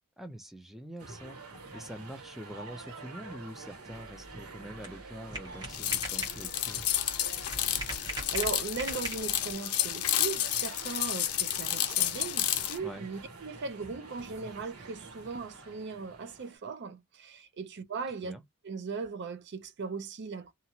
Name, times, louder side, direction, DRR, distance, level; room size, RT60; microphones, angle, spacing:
voice 1, 0.2-1.4 1.7-6.8 12.8-13.1 18.2-18.4, equal, ahead, 0.4 m, -45 dB
sound 1, 1.0-16.6, right 3 dB, 90° right, 1.2 m, -48 dB
sound 2, 4.1-9.5, right 1 dB, 20° right, 1.2 m, -41 dB
sound 3, 5.7-12.8, left 12 dB, 80° left, 0.5 m, -31 dB
voice 2, 8.0-18.3 18.6-20.5, right 4 dB, 50° right, 0.5 m, -38 dB
2.8 x 2.3 x 2.7 m
head